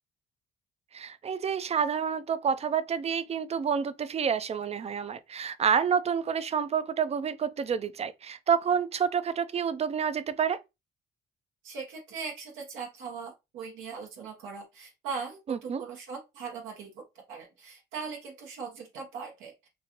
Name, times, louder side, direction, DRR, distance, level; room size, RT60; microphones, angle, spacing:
voice 1, 0.9-10.6 15.5-15.8, right 7 dB, 35° right, 0.3 m, -28 dB
voice 2, 11.6-19.7, right 5 dB, 90° right, 0.9 m, -40 dB
3.1 x 2.4 x 2.8 m
cardioid pair, 90°, 20 cm